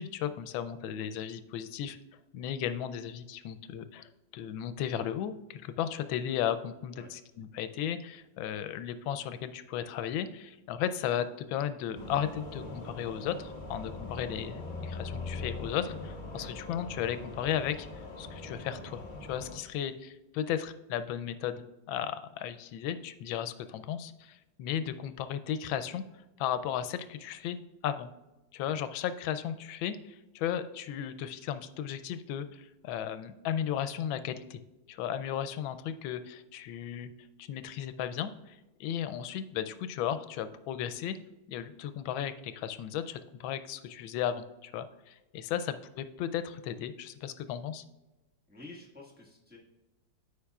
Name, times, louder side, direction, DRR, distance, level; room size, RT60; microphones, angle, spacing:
voice 1, 0.0-2.0 2.3-17.9 18.2-19.0 19.3-26.0 26.4-27.6 27.8-28.1 28.5-34.6 34.9-37.1 37.4-41.2 41.5-47.8, left 9 dB, 85° left, 11 dB, 1.3 m, -35 dB
sound 1, 11.9-19.6, left 3 dB, 35° left, 0.8 m, -41 dB
voice 2, 48.5-49.6, left 2 dB, 5° right, -4 dB, 1.2 m, -50 dB
13.0 x 5.0 x 2.3 m, 1.0 s
omnidirectional pair, 2.1 m